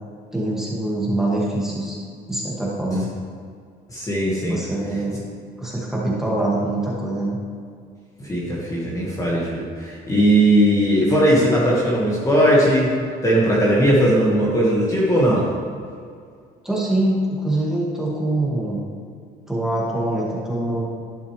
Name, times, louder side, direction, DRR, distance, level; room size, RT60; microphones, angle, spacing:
voice 1, 0.3-1.9 2.3-3.1 4.5-5.2 5.6-7.4 16.6-18.8 19.5-20.9, right 1 dB, 5° right, -6 dB, 2.2 m, -24 dB
voice 2, 3.9-4.6 8.2-12.9 13.2-15.5, right 1 dB, 20° left, -6 dB, 1.9 m, -18 dB
11.5 x 6.6 x 3.4 m, 2.2 s
cardioid pair, 110°, 17 cm